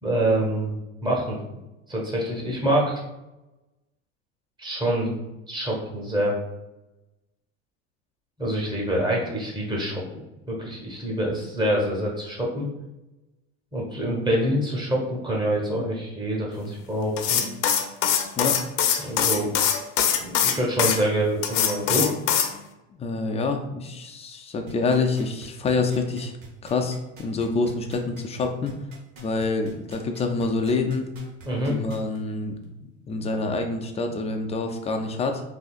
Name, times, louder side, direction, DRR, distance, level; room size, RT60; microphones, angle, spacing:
voice 1, 0.0-1.4 1.9-3.0 4.6-5.1 5.5-6.3 8.4-10.0 10.5-12.7 13.7-17.4 19.0-19.5 20.2-22.1 31.4-31.8, right 1 dB, 10° right, -3 dB, 1.2 m, -26 dB
sound 1, 17.2-21.0 21.4-22.5, left 8 dB, 65° left, 0.6 m, -22 dB
voice 2, 22.9-26.3 26.6-28.8 29.2-31.1 31.7-32.5 32.8-35.4, left 3 dB, 15° left, 4 dB, 0.4 m, -27 dB
sound 2, 24.7-32.2 32.6-32.7, right 2 dB, 85° right, 1.2 m, -46 dB
3.7 x 2.7 x 2.4 m, 0.99 s
hypercardioid pair, 90°, 39 cm